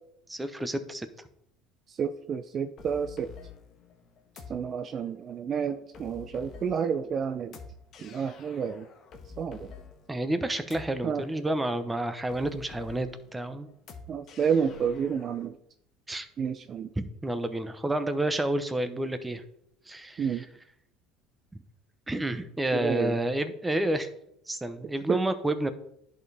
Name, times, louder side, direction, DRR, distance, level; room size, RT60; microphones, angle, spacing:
voice 1, 0.3-1.1 10.1-13.7 16.1-16.3 17.0-19.4 19.9-20.4 22.1-24.1 24.5-25.7, right 1 dB, 10° right, 10 dB, 0.8 m, -30 dB
voice 2, 1.9-3.3 4.5-7.6 8.0-8.9 9.4-9.7 11.0-11.2 14.1-15.6 16.4-16.9 20.2-20.5 22.7-23.2 25.1-25.2, right 7 dB, 45° right, 9 dB, 0.4 m, -30 dB
sound 1, 2.8-15.5, left 4 dB, 55° left, 1.2 m, -49 dB
11.0 x 4.3 x 3.4 m, 0.74 s
supercardioid pair, 90°, 0 cm